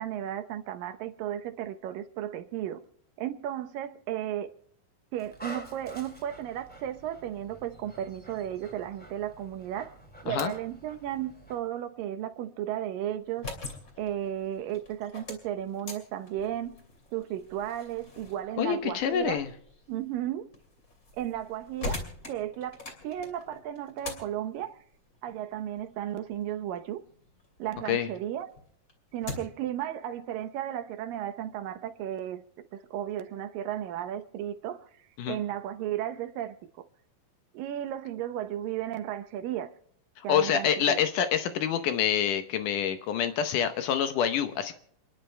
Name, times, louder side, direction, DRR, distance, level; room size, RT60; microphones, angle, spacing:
voice 1, 0.0-2.8 3.2-4.5 5.1-9.9 10.2-13.5 14.0-16.7 17.1-19.4 19.9-20.5 21.2-22.0 22.3-24.8 25.2-27.0 27.6-28.5 29.1-32.4 32.7-34.8 35.3-36.8 37.5-39.7 40.2-41.0, right 11 dB, 75° right, 2.5 m, -34 dB
Dog, 5.2-11.6, right 1 dB, 5° left, 1.6 m, -47 dB
sound 1, 13.2-27.9 28.3-29.7, left 3 dB, 25° left, 2.6 m, -44 dB
voice 2, 18.6-19.5 27.9-28.1 35.2-35.4 40.3-44.7, left 8 dB, 70° left, 2.3 m, -27 dB
28.5 x 10.5 x 3.3 m
omnidirectional pair, 4.1 m